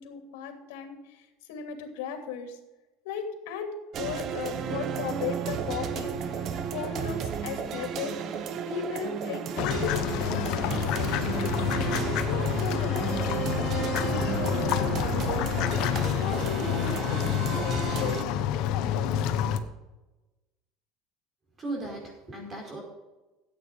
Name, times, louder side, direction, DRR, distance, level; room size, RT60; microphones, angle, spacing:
voice 1, 0.0-2.6 3.0-8.2 8.6-11.2 11.7-13.2 13.6-15.7 16.1-19.4, left 6 dB, 80° left, 5 dB, 2.8 m, -37 dB
sound 1, 3.9-18.2, right 7 dB, 40° right, 1.1 m, -33 dB
sound 2, 9.6-19.6, left 10 dB, 55° left, 1.1 m, -28 dB
voice 2, 21.6-22.8, right 2 dB, 20° right, -1 dB, 5.1 m, -36 dB
14.0 x 9.0 x 5.5 m, 1.1 s
cardioid pair, 145°, 0 cm